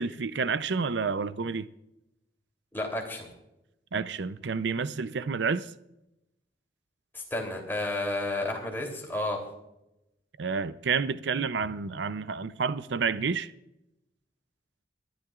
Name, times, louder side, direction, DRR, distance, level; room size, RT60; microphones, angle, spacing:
voice 1, 0.0-1.7 3.9-5.7 10.4-13.5, right 5 dB, 70° right, 0.5 m, -29 dB
voice 2, 2.7-3.3 7.1-9.4, left 1 dB, 10° left, 3.1 m, -31 dB
25.5 x 12.0 x 2.4 m
head